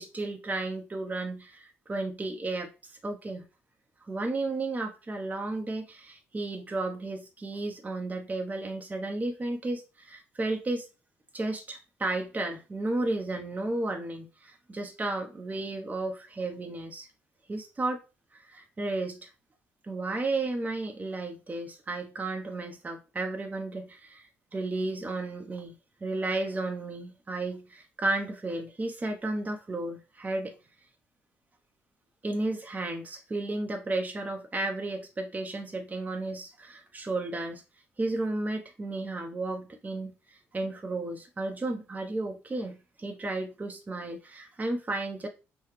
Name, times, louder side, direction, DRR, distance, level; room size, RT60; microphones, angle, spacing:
voice 1, 0.0-3.4 4.0-10.9 11.3-17.1 17.5-18.0 18.3-19.3 19.8-30.5 32.2-37.6 38.0-45.3, right 2 dB, 25° right, 0.8 m, -33 dB
5.7 x 2.2 x 3.2 m
supercardioid pair, 65°, 6 cm